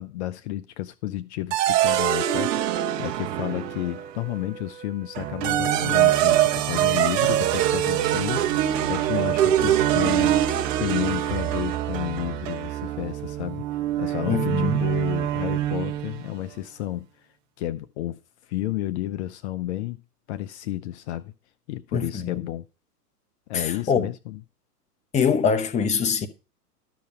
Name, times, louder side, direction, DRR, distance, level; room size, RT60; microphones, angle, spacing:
voice 1, 0.0-17.3 17.6-20.0 20.3-21.3 21.7-22.7 23.5-24.4, left 14 dB, 45° left, 0.7 m, -32 dB
sound 1, 1.5-4.1 5.2-16.3, right 12 dB, 50° right, 1.2 m, -24 dB
sound 2, 3.0-13.4, right 7 dB, 25° right, 1.6 m, -45 dB
voice 2, 14.3-14.9 21.9-22.4 23.5-24.1 25.1-26.3, left 6 dB, 15° left, 0.9 m, -23 dB
12.5 x 6.8 x 4.7 m
hypercardioid pair, 120°, 48 cm